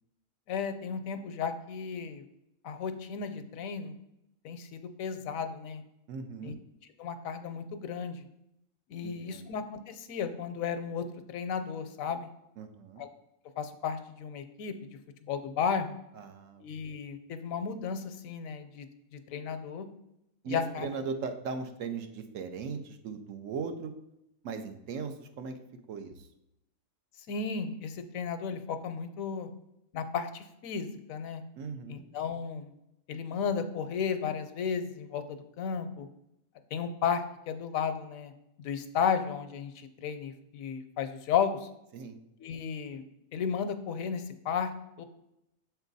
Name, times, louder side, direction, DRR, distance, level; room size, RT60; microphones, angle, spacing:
voice 1, 0.5-2.2 2.6-4.0 4.4-5.8 6.4-6.5 7.0-8.2 8.9-12.3 13.0-13.1 13.6-14.7 15.2-16.0 16.6-18.9 19.1-19.9 20.5-20.9 27.3-29.5 29.9-31.4 31.9-32.7 33.1-36.1 36.7-38.3 38.6-41.7 42.4-43.0 43.3-44.7 45.0-45.1, left 6 dB, 75° left, 9 dB, 1.0 m, -34 dB
voice 2, 6.1-6.6 9.0-9.5 12.6-13.0 16.1-16.6 20.4-23.9 24.4-25.6 25.9-26.3 31.6-32.0 41.9-42.2, right 5 dB, 70° right, 7 dB, 1.0 m, -38 dB
6.9 x 4.5 x 4.0 m, 0.83 s
omnidirectional pair, 1.4 m